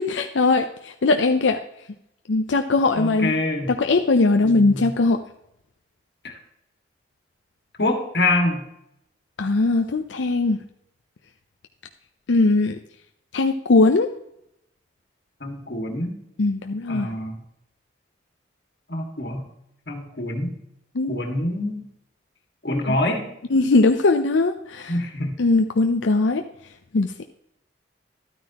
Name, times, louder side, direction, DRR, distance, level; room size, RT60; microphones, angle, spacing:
voice 1, 0.0-1.6 2.3-3.3 3.7-5.2 9.4-10.6 12.3-12.8 13.3-14.1 16.4-17.1 20.9-21.2 22.9-23.0 23.5-25.0 25.4-26.4 26.9-27.1, left 3 dB, 85° left, 6 dB, 0.6 m, -20 dB
voice 2, 3.0-3.7 4.4-4.9 6.2-6.3 7.8-8.6 15.4-16.1 16.9-17.4 18.9-19.4 19.9-20.5 21.1-21.8 22.6-23.3 24.9-25.4, left 2 dB, 60° left, 3 dB, 1.9 m, -25 dB
12.5 x 9.3 x 2.9 m, 0.78 s
head